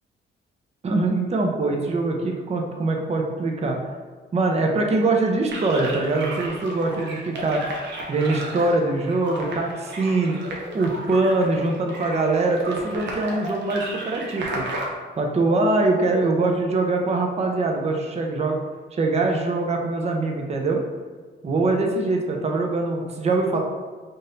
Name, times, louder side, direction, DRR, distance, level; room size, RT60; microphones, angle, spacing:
voice 1, 0.8-3.8 4.3-7.6 8.1-10.4 10.7-14.7 15.1-18.6 18.9-20.8 21.4-23.6, right 2 dB, 35° right, 2 dB, 0.6 m, -23 dB
sound 1, 5.5-14.9, right 1 dB, 65° right, 0.9 m, -34 dB
3.9 x 2.7 x 3.8 m, 1.5 s
cardioid pair, 90°, 20 cm